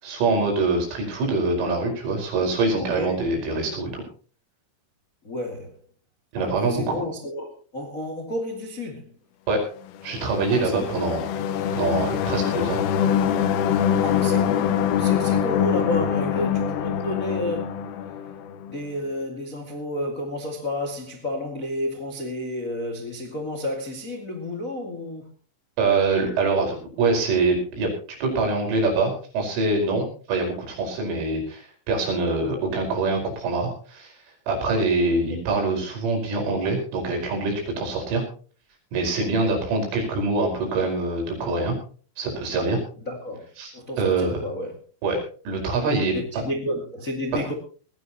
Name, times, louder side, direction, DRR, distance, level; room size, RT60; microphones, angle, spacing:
voice 1, 0.0-4.0 6.3-7.0 9.5-9.6 10.0-11.3 11.7-12.8 25.8-27.9 28.2-34.1 34.5-38.2 38.9-41.8 42.2-42.8 43.6-43.7 44.0-44.4 45.0-45.2 45.5-46.1 47.3-47.4, right 3 dB, 80° right, 7.6 m, -24 dB
voice 2, 2.8-3.2 5.2-5.8 6.4-9.2 10.5-10.9 14.0-17.8 18.7-25.2 32.5-32.6 35.1-35.4 39.2-39.6 43.1-43.5 43.7-44.8 46.1-47.5, left 1 dB, 45° left, 1.0 m, -31 dB
sound 1, 10.0-18.7, left 8 dB, 85° left, 3.8 m, -24 dB
20.0 x 16.0 x 3.0 m
omnidirectional pair, 5.6 m